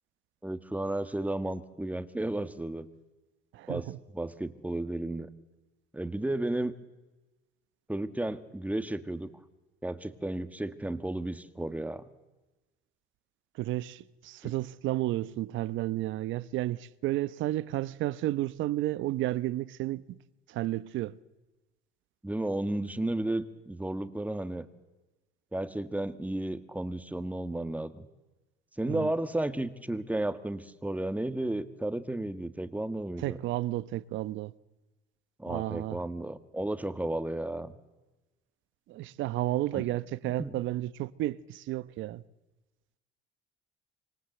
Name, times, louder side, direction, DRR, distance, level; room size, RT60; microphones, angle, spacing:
voice 1, 0.4-2.9 3.7-3.9 4.1-5.3 5.9-6.7 7.9-9.3 9.8-12.1 14.4-14.5 22.2-24.7 25.5-28.1 28.8-33.4 35.4-37.7 39.7-39.8 40.4-40.5, right 1 dB, 5° right, 1.7 m, -33 dB
voice 2, 3.5-4.0 13.5-20.2 20.5-21.2 28.9-29.1 33.2-34.5 35.5-36.0 38.9-42.2, right 15 dB, 70° right, 0.9 m, -32 dB
26.0 x 24.5 x 7.9 m
supercardioid pair, 95°, 21 cm